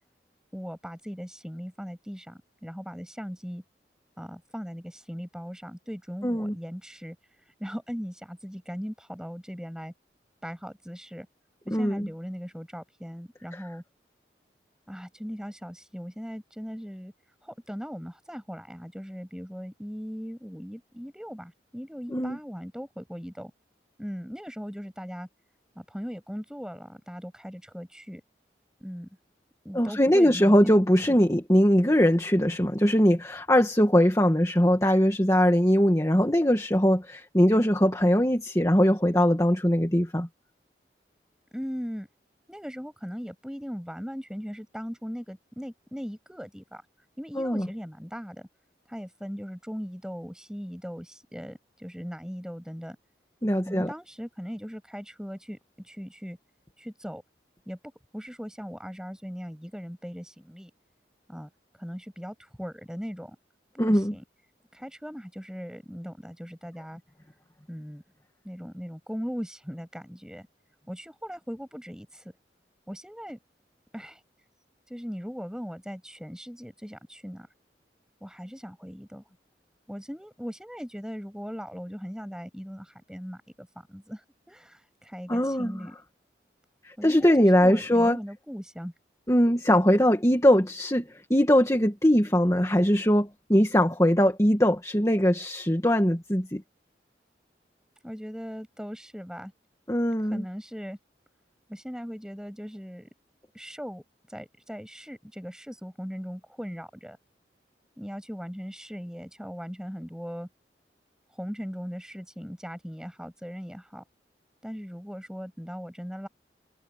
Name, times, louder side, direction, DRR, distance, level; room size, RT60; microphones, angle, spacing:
voice 1, 0.5-3.6 4.2-9.9 10.4-11.3 11.7-13.8 14.9-17.1 17.4-23.5 24.0-25.3 25.8-28.2 28.8-29.1 29.6-30.8 31.1-31.2 41.5-42.1 42.5-46.8 47.2-48.5 48.9-53.0 53.7-56.4 56.8-57.2 57.7-57.8 58.1-60.7 61.3-61.5 61.8-63.4 63.7-64.2 64.7-67.0 67.7-68.0 68.4-70.5 70.9-72.3 72.9-73.4 73.9-74.2 74.9-77.5 78.2-79.2 79.9-86.0 87.0-88.9 98.0-99.5 100.2-101.0 101.7-103.1 103.5-107.2 108.0-110.5 111.3-114.0 114.6-116.3, equal, 5° right, 7.0 m, -39 dB
voice 2, 6.2-6.5 11.7-12.1 13.5-13.6 22.1-22.4 29.7-40.3 47.4-47.7 53.4-53.9 63.8-64.1 85.3-85.7 86.8-88.2 89.3-96.6 99.9-100.4, equal, 15° left, 2.1 m, -21 dB
head